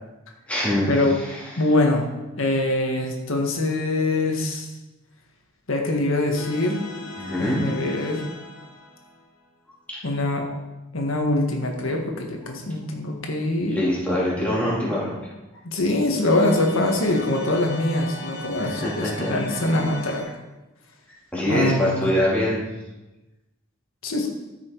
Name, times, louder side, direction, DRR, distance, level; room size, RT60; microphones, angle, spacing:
voice 1, 0.5-1.5 7.2-7.7 9.9-10.0 13.7-15.2 18.6-19.4 21.3-22.6, left 1 dB, 5° left, -7 dB, 3.1 m, -24 dB
voice 2, 1.6-2.1 2.4-4.7 5.7-6.8 7.4-8.2 10.0-10.5 10.9-13.8 15.6-20.4 21.4-22.1 24.0-24.3, left 2 dB, 90° left, 1 dB, 1.7 m, -23 dB
sound 1, 6.4-9.5 16.3-20.2, left 2 dB, 65° left, 2.5 m, -38 dB
13.5 x 6.2 x 4.6 m, 1.0 s
head